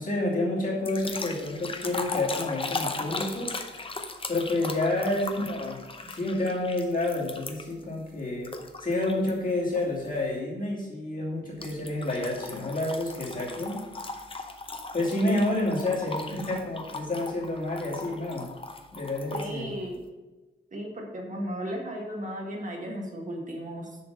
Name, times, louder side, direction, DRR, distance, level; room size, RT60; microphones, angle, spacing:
voice 1, 0.0-3.5 4.3-5.8 6.1-8.5 8.8-13.8 14.9-18.5 18.9-19.7, left 2 dB, 45° left, -4 dB, 2.7 m, -29 dB
sound 1, 0.8-7.8 8.4-9.3 9.8-10.1 11.6-19.5, left 3 dB, 30° left, 0.8 m, -38 dB
voice 2, 19.3-20.0 20.7-24.0, equal, 40° right, 0 dB, 1.7 m, -35 dB
7.0 x 5.9 x 6.5 m, 1.2 s
wide cardioid pair, 145°, 19 cm